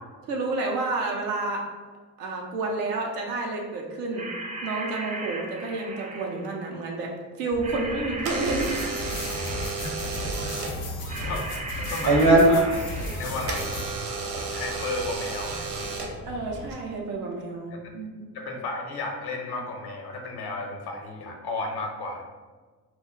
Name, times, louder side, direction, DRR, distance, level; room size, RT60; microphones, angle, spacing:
voice 1, 0.3-1.6 2.2-4.3 4.6-9.0 16.3-18.3, right 3 dB, 90° right, 0 dB, 0.6 m, -30 dB
sound 1, 4.1-6.6 7.6-10.0 11.1-13.5, right 2 dB, 20° right, 0.3 m, -37 dB
Door / Alarm, 7.5-16.7, right 2 dB, 55° right, 0.8 m, -27 dB
sound 2, 8.4-13.9, left 2 dB, 90° left, 0.5 m, -35 dB
voice 2, 9.8-10.3 10.8-11.5 11.9-13.7 14.5-15.9 18.3-22.2, left 3 dB, 55° left, 2 dB, 0.8 m, -34 dB
2.3 x 2.1 x 3.6 m, 1.4 s
hypercardioid pair, 45°, 46 cm